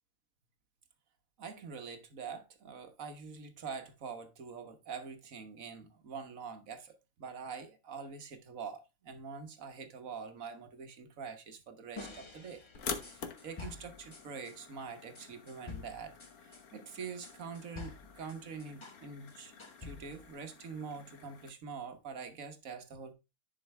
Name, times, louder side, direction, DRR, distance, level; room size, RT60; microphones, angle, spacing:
voice 1, 1.4-16.2 16.4-19.5 19.8-23.1, right 5 dB, 65° right, 1.6 m, -45 dB
sound 1, 12.0-14.6 15.1-19.0 19.3-20.3, left 4 dB, 20° left, 1.0 m, -49 dB
sound 2, 12.7-21.5, left 6 dB, 85° left, 1.6 m, -47 dB
10.5 x 5.2 x 3.2 m
omnidirectional pair, 1.5 m